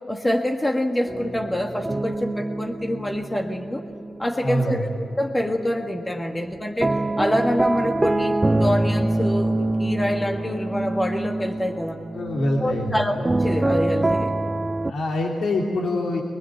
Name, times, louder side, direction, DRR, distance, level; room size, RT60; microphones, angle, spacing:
voice 1, 0.1-3.8 4.2-12.0 12.6-14.3, left 1 dB, 15° left, 3 dB, 1.6 m, -26 dB
sound 1, 1.1-5.1 5.4-14.9, right 2 dB, 20° right, 0.5 m, -25 dB
voice 2, 4.4-4.9 12.1-13.0 14.8-16.2, left 1 dB, 80° left, -2 dB, 3.1 m, -25 dB
23.5 x 21.0 x 9.3 m, 2.3 s
cardioid pair, 100°, 0 cm